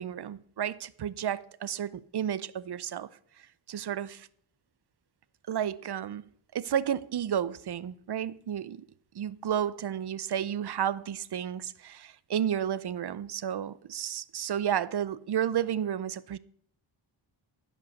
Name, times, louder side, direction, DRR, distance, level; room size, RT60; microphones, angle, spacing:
voice 1, 0.0-3.1 3.4-4.3 5.5-8.8 9.1-16.4, right 9 dB, 55° right, 0.6 m, -32 dB
15.5 x 5.4 x 6.5 m
cardioid pair, 70°, 48 cm